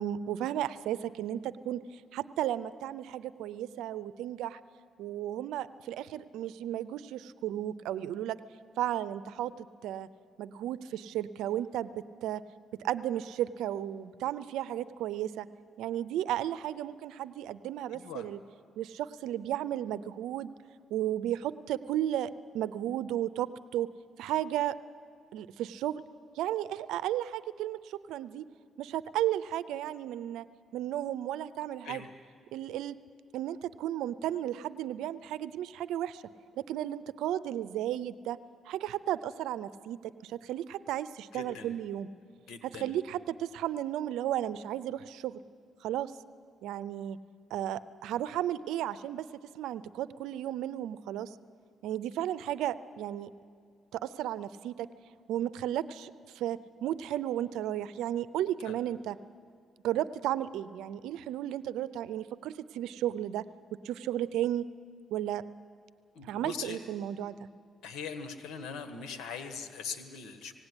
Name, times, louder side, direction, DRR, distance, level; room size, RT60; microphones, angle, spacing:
voice 1, 0.0-1.8 2.1-4.6 5.0-8.4 8.8-10.1 10.4-12.4 12.8-15.5 15.8-18.4 18.8-20.5 20.9-23.9 24.2-24.8 25.3-26.0 26.4-28.4 28.8-30.5 30.7-32.0 32.5-33.0 33.3-36.2 36.6-38.4 38.7-42.1 42.6-45.4 45.8-46.1 46.6-47.2 47.5-49.3 49.5-51.3 51.8-53.3 53.9-54.9 55.3-59.2 59.8-63.4 63.8-64.7 65.1-65.4 66.2-67.5, right 12 dB, 90° right, 16 dB, 0.6 m, -34 dB
voice 2, 17.9-18.2 31.8-32.1 41.3-41.7 42.5-43.0 58.6-58.7 66.1-66.8 67.8-70.5, left 6 dB, 85° left, 8 dB, 1.7 m, -41 dB
18.5 x 17.0 x 9.8 m, 2.1 s
cardioid pair, 90°, 0 cm